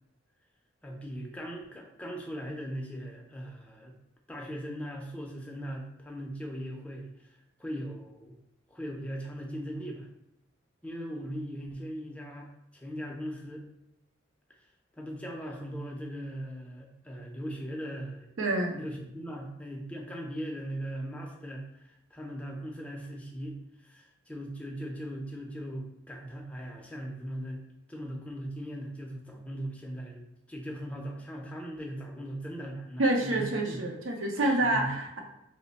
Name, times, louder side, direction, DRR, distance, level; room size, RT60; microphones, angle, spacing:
voice 1, 0.8-3.9 4.3-7.1 7.6-8.4 8.7-10.1 10.8-13.6 15.0-18.3 18.7-27.6 27.9-33.8 34.3-34.9, equal, 5° left, 0 dB, 0.4 m, -39 dB
voice 2, 18.4-18.8 33.0-35.2, right 1 dB, 80° right, 2 dB, 0.6 m, -27 dB
3.1 x 2.1 x 4.0 m, 0.85 s
head